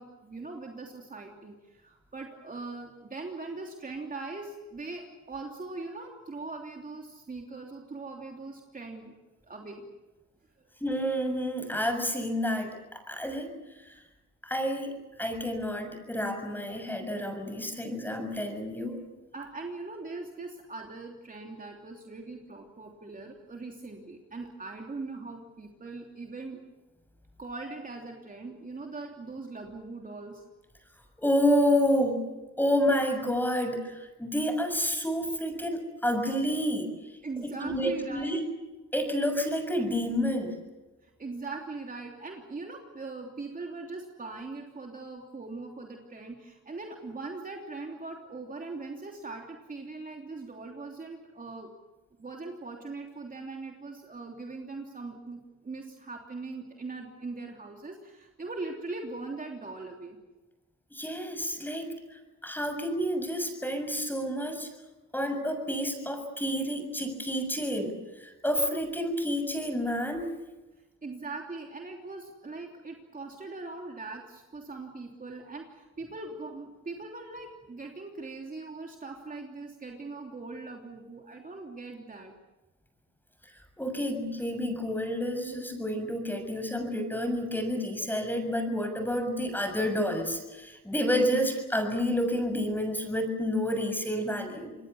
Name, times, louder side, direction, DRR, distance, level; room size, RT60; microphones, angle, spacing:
voice 1, 0.0-9.1 9.5-9.9 10.6-10.7 19.3-26.6 27.4-30.4 37.2-38.4 41.0-51.7 52.2-60.2 71.0-82.3, right 3 dB, 30° right, 1 dB, 3.1 m, -41 dB
voice 2, 10.8-13.5 13.8-13.9 14.4-14.9 15.2-19.0 31.2-32.2 32.6-37.0 37.6-38.4 38.9-40.5 60.9-61.9 62.4-64.7 65.1-70.3 83.4-83.5 83.8-94.8, equal, 5° left, 6 dB, 6.9 m, -29 dB
27.5 x 21.5 x 7.2 m, 1.1 s
cardioid pair, 90°, 30 cm